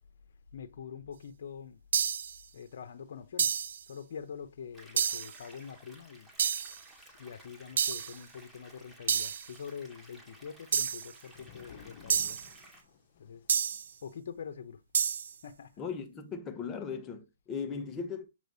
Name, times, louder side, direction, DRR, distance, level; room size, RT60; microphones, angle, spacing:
voice 1, 0.5-1.8 2.5-3.5 3.9-6.3 7.2-12.4 13.2-13.4 14.0-14.8 15.4-15.7, left 7 dB, 60° left, 0.9 m, -44 dB
sound 1, 1.9-2.4 3.4-3.8 5.0-5.3 6.4-6.8 7.8-8.2 9.1-9.5 10.7-11.1 12.1-12.5 13.5-13.9 14.9-15.3, right 7 dB, 70° right, 0.3 m, -29 dB
sound 2, 2.4-2.5 3.2-3.3 3.4-3.7 5.9-6.0 7.1-7.3 9.8-14.2, left 7 dB, 45° left, 1.1 m, -57 dB
sound 3, 4.7-12.8, right 1 dB, 5° right, 2.0 m, -56 dB
voice 2, 15.8-18.3, left 5 dB, 20° left, 1.2 m, -38 dB
7.5 x 3.3 x 4.1 m
hypercardioid pair, 145°, 0 cm